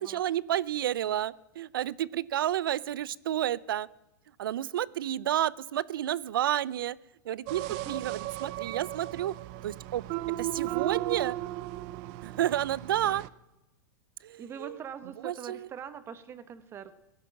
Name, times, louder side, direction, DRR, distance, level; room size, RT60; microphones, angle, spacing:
voice 1, 0.0-3.9 4.4-7.0 7.2-9.3 9.6-10.0 10.4-11.4 12.2-13.2 14.2-14.8 15.2-15.7, right 12 dB, 90° right, 23 dB, 0.5 m, -30 dB
sound 1, 7.5-13.3, right 16 dB, 45° right, 0.6 m, -35 dB
voice 2, 14.4-16.9, right 8 dB, 20° right, 13 dB, 1.1 m, -43 dB
17.0 x 12.5 x 5.8 m, 0.94 s
supercardioid pair, 145°, 11 cm